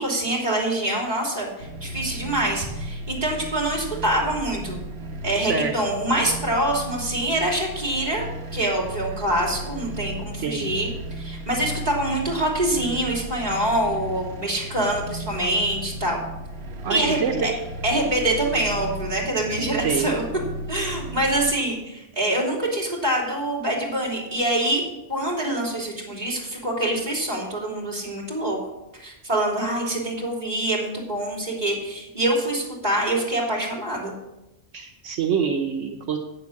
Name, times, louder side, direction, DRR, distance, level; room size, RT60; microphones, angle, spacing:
voice 1, 0.0-4.8 5.2-8.2 8.5-10.9 11.2-16.2 16.9-17.5 17.8-20.2 20.7-24.8 25.1-28.6 29.0-34.1, right 1 dB, 35° right, -3 dB, 3.3 m, -25 dB
sound 1, 1.6-21.5, right 1 dB, 60° right, 1.4 m, -35 dB
voice 2, 5.4-5.7 10.4-10.7 16.8-17.4 19.8-20.1 34.7-36.2, right 6 dB, 80° right, 3 dB, 1.3 m, -26 dB
8.4 x 7.4 x 8.2 m, 0.98 s
omnidirectional pair, 1.2 m